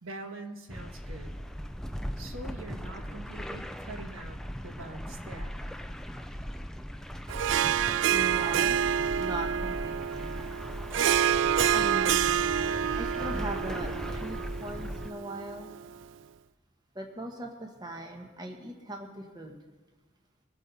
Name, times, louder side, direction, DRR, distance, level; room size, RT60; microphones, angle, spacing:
voice 1, 0.0-1.4 2.2-5.5, right 2 dB, 80° right, 4 dB, 1.5 m, -44 dB
sound 1, 0.7-15.1, equal, 5° left, 0.4 m, -39 dB
Harp, 7.3-15.9, right 9 dB, 65° right, 0.3 m, -28 dB
voice 2, 8.1-8.9 9.2-10.3 11.7-12.4 13.0-15.7 16.9-19.6, right 1 dB, 20° right, 2 dB, 1.2 m, -39 dB
21.5 x 8.4 x 4.1 m, 1.2 s
head